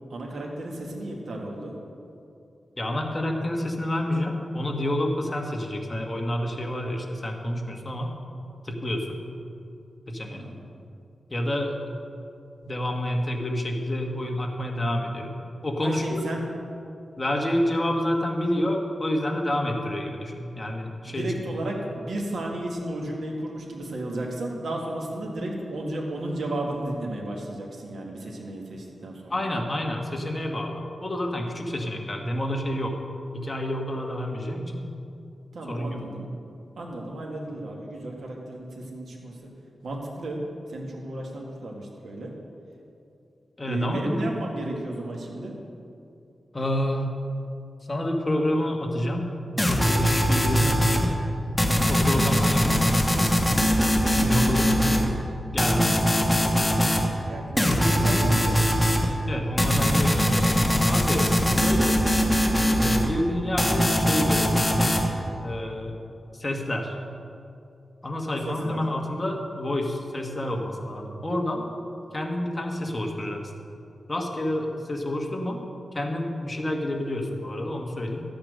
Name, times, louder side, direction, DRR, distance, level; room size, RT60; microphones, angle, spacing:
voice 1, 0.1-1.8 10.3-10.6 15.8-16.5 21.0-29.4 35.5-36.3 36.8-39.5 39.8-40.4 40.7-42.3 43.6-45.5 51.9-52.2 54.2-54.5 57.3-58.8 68.5-68.8, right 1 dB, 80° right, -1 dB, 1.9 m, -33 dB
voice 2, 2.8-8.1 8.6-9.2 10.1-10.4 11.3-11.8 12.6-15.3 15.6-16.2 17.2-21.6 29.3-33.0 33.3-34.8 35.7-36.0 43.6-44.3 46.5-47.2 47.9-49.3 49.9-51.1 51.9-53.3 54.1-55.0 55.5-56.0 59.3-62.0 62.6-64.8 65.4-65.9 66.3-66.9 68.0-71.6 72.1-73.4 74.1-75.6 75.9-78.2, left 1 dB, 25° left, 1 dB, 1.6 m, -28 dB
sound 1, 49.6-51.1 51.6-55.1 55.6-57.1 57.6-59.1 59.6-63.1 63.6-65.1, equal, 10° left, 1.3 m, -21 dB
13.0 x 8.8 x 6.5 m, 2.6 s
wide cardioid pair, 100°, 0 cm